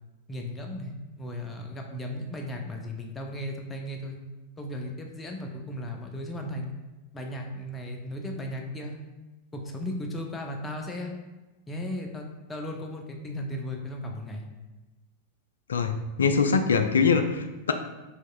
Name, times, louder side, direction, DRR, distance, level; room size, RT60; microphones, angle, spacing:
voice 1, 0.3-4.2 4.6-6.7 7.1-9.1 9.5-11.1 11.7-14.5, left 1 dB, 15° left, 2 dB, 0.5 m, -36 dB
voice 2, 15.7-17.7, left 5 dB, 70° left, 8 dB, 0.3 m, -23 dB
4.4 x 3.0 x 2.3 m, 1.1 s
figure-of-eight pair, 90°, 0 cm